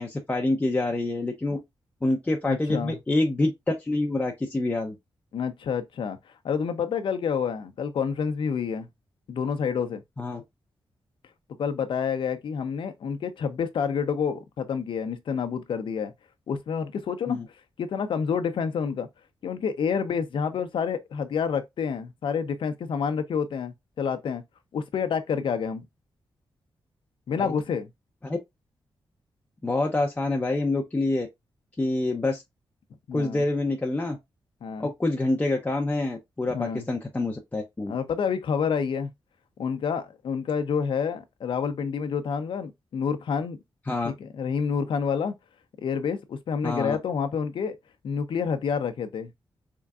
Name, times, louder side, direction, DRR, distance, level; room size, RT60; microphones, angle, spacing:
voice 1, 0.0-1.6 2.0-5.0 10.2-10.4 17.3-17.4 27.4-27.5 28.2-28.4 29.6-31.3 31.8-32.4 33.1-34.2 34.8-37.9 43.9-44.1 46.6-47.0, left 2 dB, 15° left, 0.6 m, -26 dB
voice 2, 2.5-3.0 5.3-6.2 6.4-8.9 9.3-10.0 11.6-16.1 16.5-17.4 17.8-19.1 19.4-24.4 24.7-25.8 27.3-27.9 33.1-33.4 34.6-34.9 36.5-36.9 37.9-39.1 39.6-43.6 44.0-45.3 45.8-47.7 48.0-49.3, left 6 dB, 75° left, 0.7 m, -28 dB
3.7 x 3.4 x 2.4 m
wide cardioid pair, 140°, 9 cm